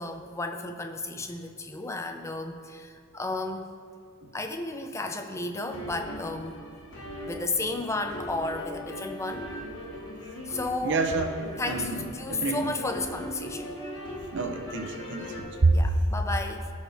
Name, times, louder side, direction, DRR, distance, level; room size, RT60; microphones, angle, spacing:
voice 1, 0.0-3.7 4.3-6.6 7.3-9.5 10.5-11.0 11.6-13.8 15.7-16.7, left 2 dB, 15° left, 6 dB, 0.5 m, -33 dB
sound 1, 5.6-15.4, equal, 55° left, 2.2 m, -39 dB
voice 2, 10.8-11.3 11.7-12.0 12.3-12.7 14.3-15.7, right 3 dB, 55° right, 5 dB, 0.7 m, -27 dB
16.5 x 6.4 x 3.4 m, 2.1 s
head